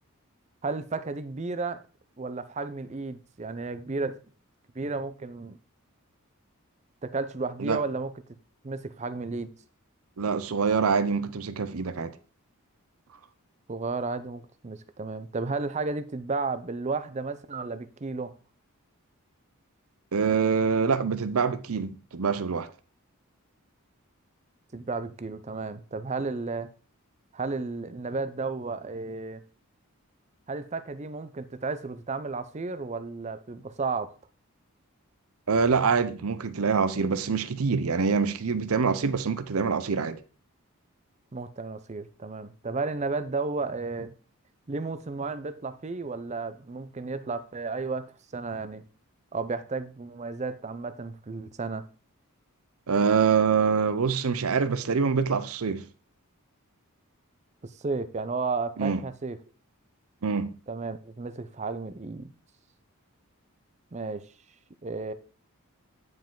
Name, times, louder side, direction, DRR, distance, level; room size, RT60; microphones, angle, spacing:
voice 1, 0.6-1.8 2.2-4.2 4.8-5.6 7.0-8.1 8.6-9.5 13.7-18.3 24.7-26.7 27.3-29.4 30.5-34.2 41.3-44.1 44.7-48.8 49.3-51.9 57.6-59.4 60.7-62.3 63.9-64.3 64.8-65.1, right 3 dB, 30° right, 0.5 m, -33 dB
voice 2, 10.2-12.1 20.1-22.7 35.5-40.2 52.9-55.9 58.8-59.0 60.2-60.5, right 5 dB, 70° right, 0.6 m, -25 dB
9.5 x 5.1 x 3.8 m
head